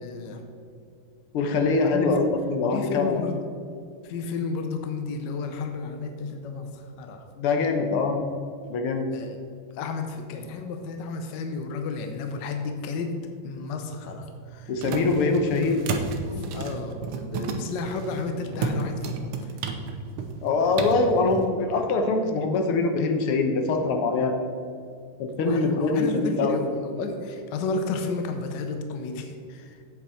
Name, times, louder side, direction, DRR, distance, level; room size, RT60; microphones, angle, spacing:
voice 1, 0.0-0.4 1.8-2.3 2.7-3.4 4.0-7.2 9.1-9.4 9.7-13.1 13.4-14.7 16.5-19.5 25.4-29.8, left 4 dB, 65° left, 5 dB, 1.3 m, -32 dB
voice 2, 1.3-3.2 7.4-8.2 8.7-9.1 14.7-15.8 16.3-16.6 20.4-24.5 25.2-26.5, left 3 dB, 80° left, 4 dB, 1.8 m, -23 dB
sound 1, 13.6-21.5, right 4 dB, 80° right, 1.8 m, -33 dB
8.4 x 8.1 x 4.4 m, 2.2 s
omnidirectional pair, 2.4 m